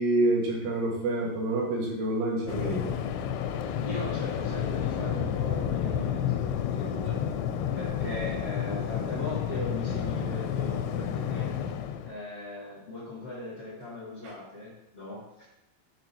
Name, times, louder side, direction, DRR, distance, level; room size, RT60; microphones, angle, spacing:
voice 1, 0.0-3.0, right 2 dB, 80° right, -3 dB, 3.9 m, -27 dB
Waves surf, 2.5-12.1, left 9 dB, 85° left, 2.6 m, -30 dB
voice 2, 3.8-7.2 7.7-11.5 12.0-15.5, left 2 dB, 40° left, -9 dB, 0.8 m, -39 dB
10.5 x 4.6 x 2.8 m, 0.87 s
omnidirectional pair, 5.4 m